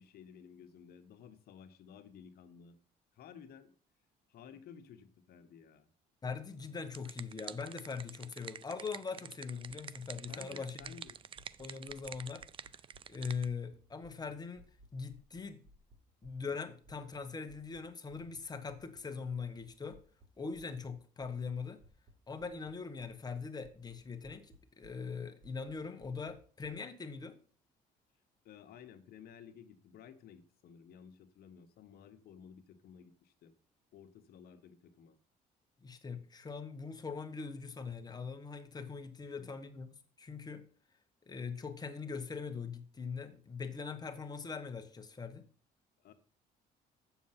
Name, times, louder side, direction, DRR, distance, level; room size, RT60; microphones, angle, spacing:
voice 1, 0.0-2.8 3.1-3.7 4.3-5.9 10.3-11.2 28.4-33.5 33.9-35.2 39.2-39.5 46.0-46.1, left 7 dB, 65° left, 7 dB, 1.3 m, -55 dB
voice 2, 6.2-10.9 11.6-12.4 13.1-14.6 14.9-15.6 16.2-20.0 20.4-21.8 22.3-27.4 35.8-39.9 40.2-40.6 41.3-45.4, left 5 dB, 25° left, 7 dB, 1.3 m, -41 dB
sound 1, 6.6-13.5, right 8 dB, 30° right, 0.4 m, -48 dB
sound 2, 9.9-13.8 14.0-17.2 17.4-17.8 18.1-18.4 18.7-19.0 19.3-19.6 19.9-20.3 20.5-20.9 21.2-21.5 21.8-22.1 22.4-22.7 23.0-23.3 23.6-24.6 24.8-25.1 25.4-25.7 26.0-26.7, right 1 dB, 50° right, 3.6 m, -60 dB
7.7 x 7.1 x 5.8 m, 0.44 s
cardioid pair, 110°, 17 cm